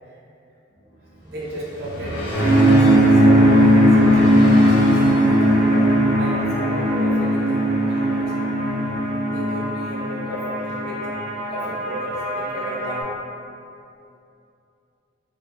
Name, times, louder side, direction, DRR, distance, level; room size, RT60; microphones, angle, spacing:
sound 1, 0.7-5.8, equal, 80° left, 0.5 m, -32 dB
voice 1, 1.2-4.3 4.7-4.9 6.1-8.5 9.3-11.2 11.5-13.1, equal, 55° right, -6 dB, 0.6 m, -34 dB
sound 2, 2.3-13.0, equal, 55° left, 0.9 m, -18 dB
2.2 x 2.2 x 3.6 m, 2.6 s
head